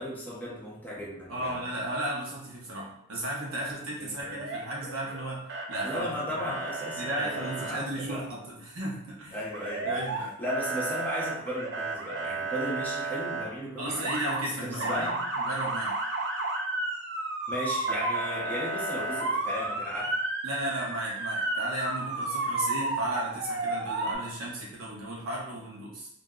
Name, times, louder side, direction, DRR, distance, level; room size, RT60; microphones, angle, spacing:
voice 1, 0.0-1.6 4.0-4.3 5.8-8.3 9.3-10.0 10.4-14.1 14.6-15.2 17.5-20.1, equal, 10° left, -5 dB, 0.6 m, -35 dB
voice 2, 1.3-6.4 7.0-9.4 9.8-10.3 13.8-16.0 20.4-26.1, right 1 dB, 75° right, -3 dB, 0.9 m, -35 dB
Motor vehicle (road) / Siren, 4.2-5.2 5.5-6.0 6.4-7.7 9.5-10.2 10.5-13.4 13.9-14.4 14.8-24.2, right 2 dB, 50° right, 0.5 m, -32 dB
2.6 x 2.1 x 3.6 m, 0.76 s
head